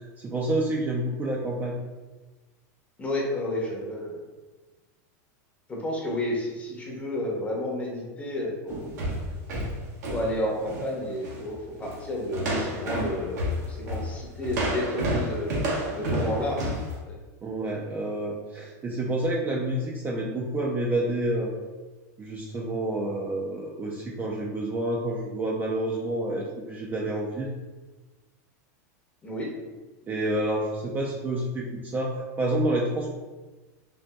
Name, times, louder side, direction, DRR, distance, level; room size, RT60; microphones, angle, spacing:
voice 1, 0.0-1.7 17.4-21.6 22.2-27.5 30.1-33.1, right 1 dB, 20° right, -2 dB, 0.4 m, -29 dB
voice 2, 3.0-4.2 5.7-8.9 10.1-17.1 29.2-29.5, left 1 dB, 15° left, -2 dB, 0.7 m, -31 dB
sound 1, 8.7-10.9 11.2-11.5 11.8-12.1 12.3-16.9, equal, 85° right, 1.0 m, -30 dB
3.9 x 2.5 x 2.2 m, 1.2 s
supercardioid pair, 135°, 9 cm